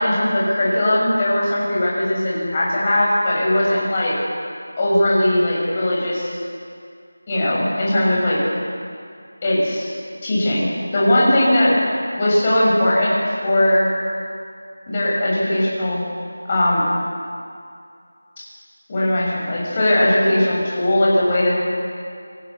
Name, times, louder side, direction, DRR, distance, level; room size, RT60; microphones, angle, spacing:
voice 1, 0.0-4.1 4.8-6.4 7.3-8.4 9.4-9.9 10.2-11.7 12.2-13.1 13.4-13.9 14.9-16.0 16.5-16.8 18.9-21.6, left 1 dB, 20° left, -6 dB, 7.1 m, -19 dB
29.0 x 19.0 x 7.0 m, 2.3 s
figure-of-eight pair, 175°, 0 cm